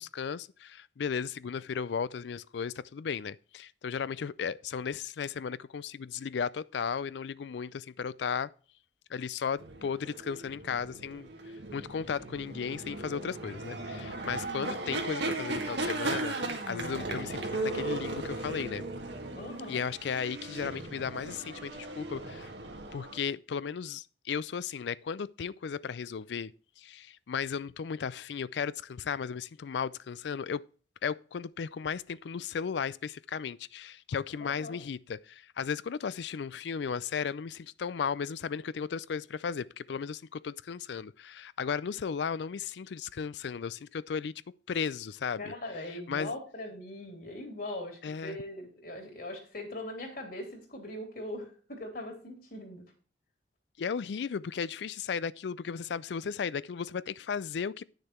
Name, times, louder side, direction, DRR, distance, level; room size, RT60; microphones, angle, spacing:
voice 1, 0.0-8.5 9.1-11.3 11.7-18.8 19.7-22.5 22.9-26.5 26.8-30.7 31.0-44.3 44.7-45.5 46.1-46.3 48.0-48.4 53.8-57.8, left 6 dB, 75° left, 0.4 m, -35 dB
sound 1, 9.6-23.2, right 2 dB, 80° right, 1.8 m, -37 dB
voice 2, 19.3-19.8 34.4-34.8 45.4-52.8, left 1 dB, 55° left, 3.0 m, -41 dB
10.0 x 6.5 x 4.4 m
head